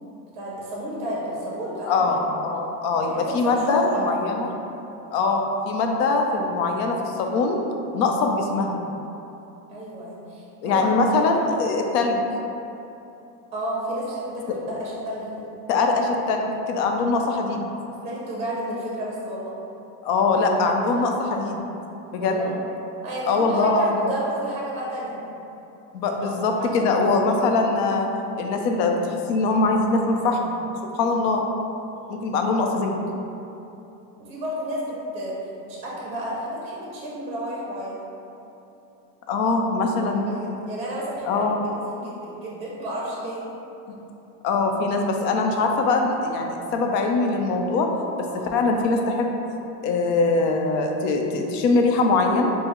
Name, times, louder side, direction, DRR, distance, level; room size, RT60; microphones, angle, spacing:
voice 1, 0.3-2.3 2.9-4.3 9.7-11.5 13.5-15.3 16.7-16.9 18.0-19.6 22.2-22.6 23.0-25.2 26.1-26.9 31.9-32.3 34.2-35.4 35.7-38.0 40.0-41.4 41.7-43.5 48.3-48.6, right 1 dB, 15° right, -5 dB, 0.5 m, -32 dB
voice 2, 1.9-4.5 5.1-7.6 7.9-8.7 10.6-12.2 15.7-17.7 20.0-21.7 22.1-22.4 23.3-24.1 25.9-28.1 28.4-30.5 31.0-31.4 32.1-33.0 39.3-40.3 41.3-41.6 44.4-47.9 48.5-49.3 49.8-52.5, left 3 dB, 80° left, 2 dB, 0.7 m, -22 dB
5.4 x 2.0 x 3.0 m, 2.9 s
supercardioid pair, 160°, 48 cm